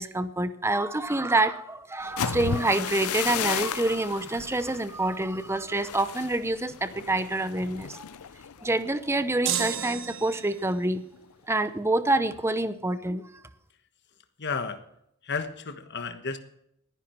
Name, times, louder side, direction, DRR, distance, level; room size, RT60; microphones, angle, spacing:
voice 1, 0.0-8.1 8.6-11.0 11.5-13.3, right 2 dB, 10° right, 12 dB, 0.8 m, -27 dB
sound 1, 2.0-9.9 10.2-10.5 10.9-11.3, left 8 dB, 80° left, 0.6 m, -35 dB
sound 2, 9.5-10.8, right 9 dB, 60° right, 1.4 m, -31 dB
voice 2, 14.4-14.8 15.2-16.4, left 5 dB, 50° left, 8 dB, 1.3 m, -32 dB
19.0 x 10.5 x 4.5 m, 0.76 s
head